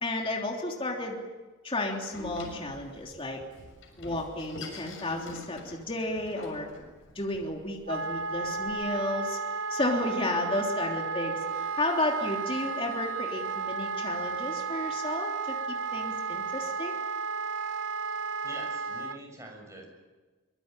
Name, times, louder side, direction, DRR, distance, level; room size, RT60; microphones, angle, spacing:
voice 1, 0.0-1.2 1.6-3.4 4.0-6.7 7.2-9.4 9.7-15.6 15.9-17.0, left 2 dB, 25° left, 0 dB, 3.3 m, -32 dB
Door, 2.1-8.7, left 2 dB, 70° left, 6.6 m, -46 dB
Wind instrument woodwind instrument, 7.9-19.2, right 4 dB, 65° right, 0.9 m, -33 dB
voice 2, 18.4-19.9, right 1 dB, 15° right, 1 dB, 6.6 m, -45 dB
24.5 x 22.5 x 9.1 m, 1.2 s
head